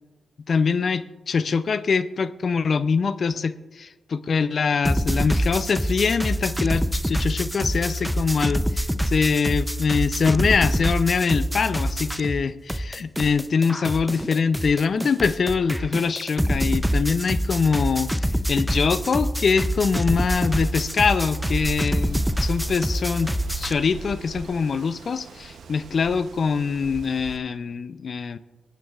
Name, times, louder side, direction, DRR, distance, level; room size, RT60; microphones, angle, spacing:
voice 1, 0.5-28.4, left 5 dB, 55° left, 14 dB, 0.5 m, -23 dB
sound 1, 4.8-12.4 12.7-23.7, equal, ahead, 0.5 m, -26 dB
Wind, 19.5-27.4, right 5 dB, 75° right, 0.8 m, -40 dB
24.0 x 9.2 x 2.4 m, 1.2 s
cardioid pair, 55°, 0 cm